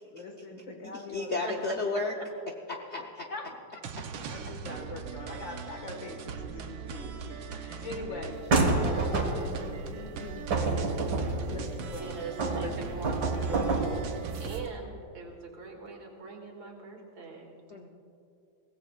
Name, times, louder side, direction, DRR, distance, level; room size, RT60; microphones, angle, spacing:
voice 1, 0.0-1.9 2.1-2.2 2.9-3.0 3.3-3.5 4.3-8.4 8.8-13.9, left 2 dB, 70° left, 3 dB, 2.4 m, -43 dB
voice 2, 0.9-2.2 2.5-3.5 4.0-4.1 7.5-7.7 10.5-11.1 11.5-12.1 17.7-17.9, left 3 dB, 55° left, 1 dB, 0.8 m, -35 dB
sound 1, 3.8-14.7, right 6 dB, 90° right, 1.7 m, -40 dB
sound 2, 8.5-9.7 10.5-12.0 12.4-14.6, right 3 dB, 55° right, 2.1 m, -28 dB
voice 3, 11.9-13.7 14.4-17.6, right 4 dB, 75° right, 0 dB, 2.8 m, -41 dB
23.0 x 17.0 x 2.4 m, 2.7 s
omnidirectional pair, 2.1 m